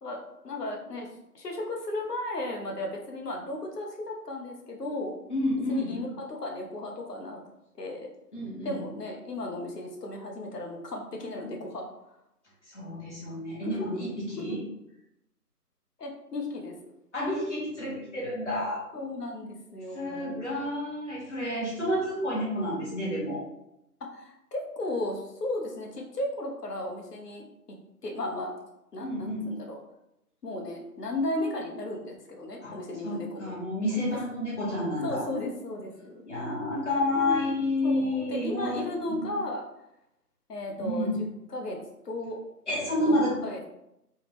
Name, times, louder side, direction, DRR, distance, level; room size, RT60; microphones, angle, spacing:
voice 1, 0.0-1.1 1.3-5.2 5.7-7.4 7.8-8.1 8.6-11.8 14.4-14.6 16.0-16.7 18.9-20.5 24.0-27.4 28.0-28.5 28.9-29.8 30.4-33.5 33.9-34.0 35.0-36.3 37.1-39.6 40.5-41.8 42.0-42.4 43.0-43.6, left 1 dB, 75° left, 0 dB, 1.0 m, -35 dB
voice 2, 5.3-6.0 8.3-8.8 12.7-14.6 17.1-18.8 19.9-23.4 29.0-29.5 32.6-32.7 33.0-35.3 36.2-38.8 39.2-39.3 40.8-41.2 42.7-43.4, left 1 dB, 45° left, -6 dB, 1.5 m, -30 dB
3.6 x 2.2 x 3.1 m, 0.84 s
figure-of-eight pair, 175°, 48 cm